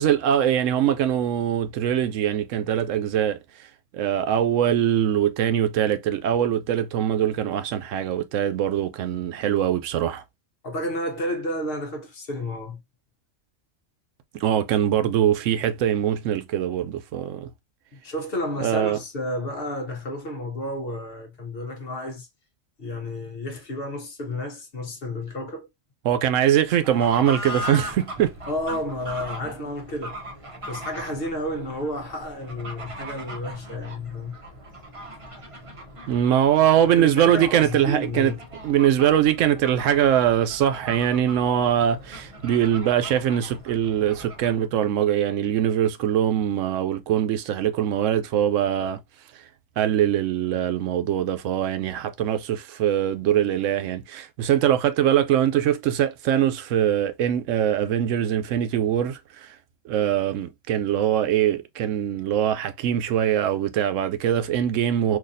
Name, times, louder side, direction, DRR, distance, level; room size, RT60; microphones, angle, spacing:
voice 1, 0.0-3.4 3.9-10.2 14.4-17.5 18.6-19.0 26.0-28.3 36.1-38.3 38.6-49.0 49.8-59.5 59.9-65.2, right 10 dB, 80° right, 0.9 m, -22 dB
voice 2, 10.6-12.8 17.9-22.3 22.8-25.7 28.5-30.2 30.7-34.4 36.9-38.4, left 1 dB, 50° left, 1.0 m, -31 dB
Fowl / Bird, 26.6-44.7, right 1 dB, 30° right, 0.7 m, -39 dB
3.9 x 2.7 x 2.5 m
omnidirectional pair, 1.3 m